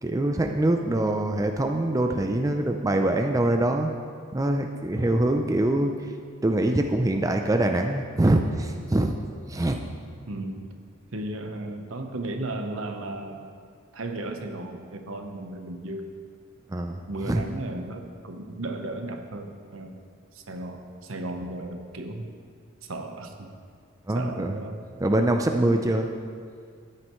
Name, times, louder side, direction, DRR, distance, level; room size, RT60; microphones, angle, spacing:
voice 1, 0.0-3.9 4.3-5.9 6.4-9.1 9.5-9.8 16.7-17.4 24.1-24.6 25.0-26.1, right 1 dB, 15° right, 4 dB, 0.4 m, -24 dB
voice 2, 10.3-10.7 11.1-13.4 13.9-16.1 17.1-19.9 20.3-22.3 22.8-23.5 24.1-24.9, right 2 dB, 75° right, 5 dB, 1.0 m, -35 dB
13.5 x 9.7 x 3.1 m, 2.1 s
head